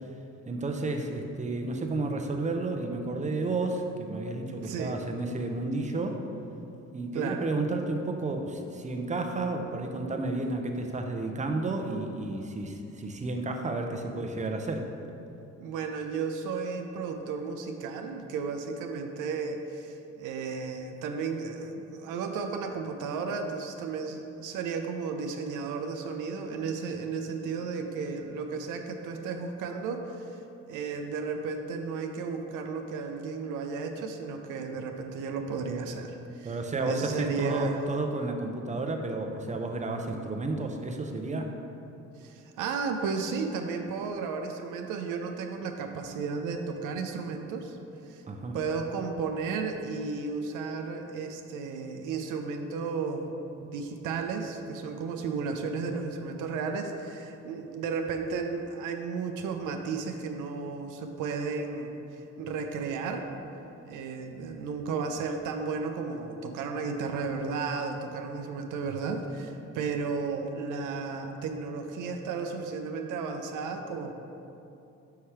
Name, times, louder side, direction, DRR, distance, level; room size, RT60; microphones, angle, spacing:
voice 1, 0.5-6.2 6.9-14.9 36.4-41.6 48.3-48.6, right 2 dB, 25° right, 3 dB, 0.6 m, -31 dB
voice 2, 4.6-5.0 7.1-7.5 14.0-14.3 15.6-30.4 30.7-36.5 36.9-37.8 42.2-47.8 48.0-48.2 48.5-63.3 63.8-74.1, right 4 dB, 85° right, 5 dB, 0.5 m, -34 dB
5.7 x 3.2 x 5.7 m, 2.8 s
cardioid pair, 90°, 30 cm